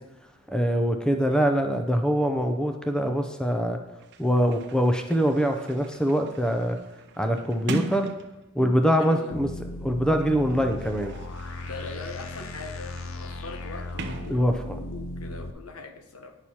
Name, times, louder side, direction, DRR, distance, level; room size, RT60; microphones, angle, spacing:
voice 1, 0.5-3.8 4.2-6.8 7.2-8.1 8.5-9.5 9.8-11.2 14.3-14.8, equal, 5° left, 5 dB, 0.5 m, -24 dB
Sliding door, 4.0-9.1 10.0-15.0, right 2 dB, 55° right, 0.7 m, -41 dB
voice 2, 8.9-9.3 11.6-16.4, left 3 dB, 85° left, 6 dB, 1.0 m, -41 dB
sound 1, 9.3-15.5, left 1 dB, 65° left, 0.6 m, -37 dB
9.5 x 6.1 x 4.3 m, 0.97 s
head